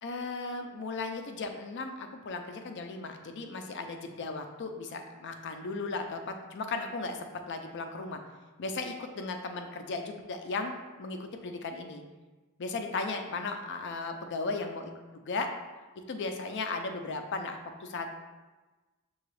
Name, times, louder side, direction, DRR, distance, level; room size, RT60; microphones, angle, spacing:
voice 1, 0.0-8.2 8.6-12.0 12.6-14.9 15.3-15.5 16.1-18.1, left 3 dB, 55° left, 5 dB, 0.5 m, -36 dB
6.7 x 2.3 x 3.2 m, 1.2 s
head